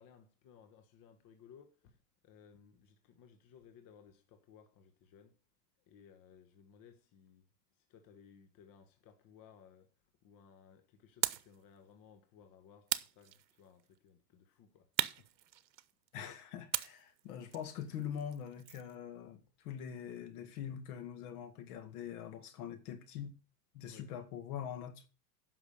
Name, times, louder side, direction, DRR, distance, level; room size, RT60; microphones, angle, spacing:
voice 1, 0.0-5.4 5.9-7.5 7.8-9.9 10.2-15.3 23.9-24.1, left 7 dB, 40° left, 1.4 m, -61 dB
sound 1, 11.2-11.6 12.9-13.8 15.0-16.1 16.7-18.9, right 13 dB, 85° right, 0.8 m, -38 dB
voice 2, 16.1-23.4 23.7-25.1, left 9 dB, 60° left, 2.0 m, -43 dB
9.9 x 6.1 x 6.6 m
hypercardioid pair, 100°, 50 cm